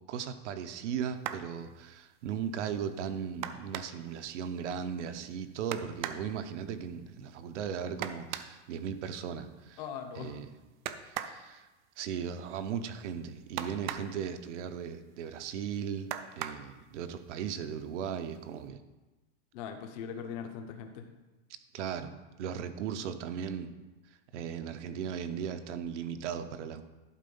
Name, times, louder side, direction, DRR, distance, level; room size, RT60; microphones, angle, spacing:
voice 1, 0.1-9.8 10.1-10.5 11.0-11.7 12.0-18.8 21.7-23.7 24.3-26.8, right 8 dB, 70° right, 9 dB, 0.9 m, -37 dB
sound 1, 1.2-1.5 3.4-4.1 5.7-6.3 8.0-8.6 10.9-11.4 13.6-14.2 16.1-16.7 17.8-17.9 18.4-18.6, right 10 dB, 40° right, 0.4 m, -38 dB
voice 2, 9.8-10.4 19.5-21.0, left 7 dB, 35° left, 5 dB, 0.8 m, -40 dB
11.5 x 4.5 x 5.4 m, 1.1 s
supercardioid pair, 170°, 37 cm